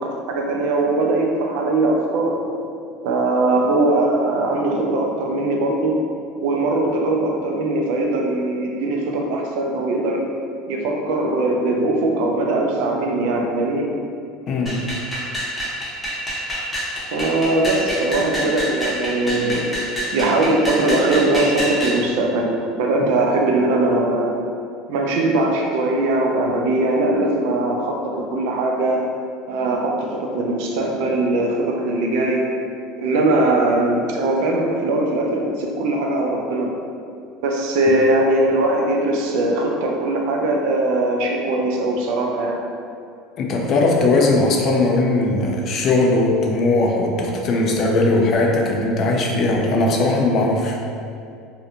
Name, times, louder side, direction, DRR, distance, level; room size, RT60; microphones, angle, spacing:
voice 1, 0.0-2.4 3.0-5.9 6.4-10.2 10.7-13.9 17.1-19.7 20.1-24.4 24.9-29.0 29.5-32.4 33.0-36.7 37.4-42.6, right 2 dB, 70° right, 0 dB, 0.4 m, -20 dB
voice 2, 14.5-14.9 43.4-50.8, left 2 dB, 45° left, 0 dB, 0.4 m, -19 dB
sound 1, 14.7-22.0, equal, 15° left, 0.7 m, -27 dB
2.6 x 2.1 x 2.7 m, 2.4 s
supercardioid pair, 100°, 0 cm